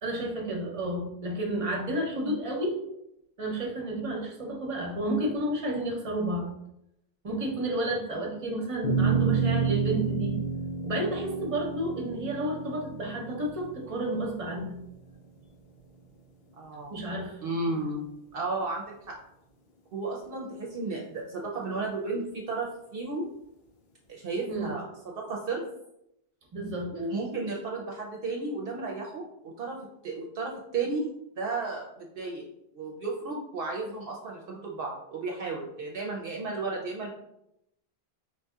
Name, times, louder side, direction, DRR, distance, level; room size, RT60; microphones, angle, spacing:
voice 1, 0.0-2.8 3.4-6.5 7.2-10.4 10.8-14.8 16.9-17.4 24.5-24.7 26.5-27.0, right 1 dB, 35° right, -1 dB, 0.8 m, -31 dB
sound 1, 8.8-15.4, right 5 dB, 75° left, 0.9 m, -30 dB
voice 2, 16.6-17.0 17.4-19.2 19.9-23.3 24.1-25.6 26.9-29.8 30.0-31.1 31.4-32.4 32.7-37.1, right 3 dB, 65° right, -1 dB, 0.7 m, -33 dB
4.8 x 2.7 x 2.3 m, 0.82 s
omnidirectional pair, 1.0 m